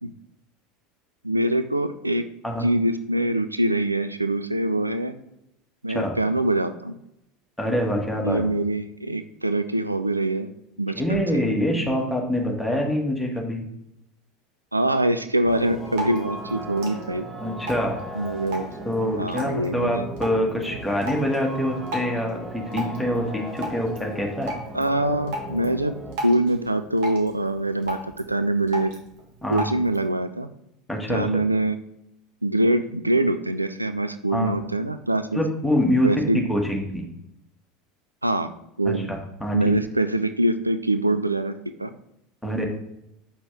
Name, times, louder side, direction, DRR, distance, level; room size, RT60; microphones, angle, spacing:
voice 1, 1.2-2.3 2.6-5.1 5.8-6.9 8.2-10.5 10.8-11.4 14.7-17.3 18.1-18.7 19.2-20.1 24.7-25.9 26.2-28.9 29.5-30.5 31.1-31.8 32.4-35.4 36.0-36.5 38.2-38.5 38.8-39.1 39.5-41.5 41.8-41.9, right 1 dB, 85° right, 10 dB, 0.3 m, -24 dB
voice 2, 7.6-8.4 10.9-13.6 17.4-18.0 18.8-24.5 29.4-29.7 30.9-31.4 34.3-34.6 35.3-37.0 38.8-39.8 42.4-42.6, equal, ahead, -1 dB, 1.6 m, -25 dB
sound 1, 15.5-26.1, right 1 dB, 15° right, 1.8 m, -37 dB
Drip, 15.6-30.1, equal, 55° right, 1.6 m, -38 dB
7.0 x 5.8 x 3.7 m, 0.82 s
figure-of-eight pair, 75°, 0 cm